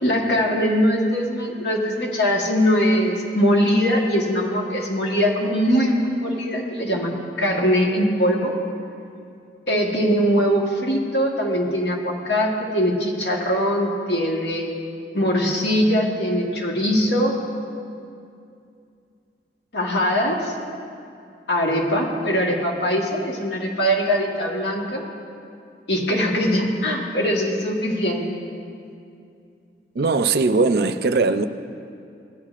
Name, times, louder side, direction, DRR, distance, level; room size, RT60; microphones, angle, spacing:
voice 1, 0.0-8.5 9.7-14.7 15.1-17.4 19.7-20.5 21.5-25.0 25.9-28.2, equal, 85° left, -1 dB, 1.3 m, -21 dB
voice 2, 30.0-31.5, right 3 dB, 60° right, 10 dB, 0.4 m, -19 dB
16.0 x 9.8 x 2.5 m, 2.5 s
head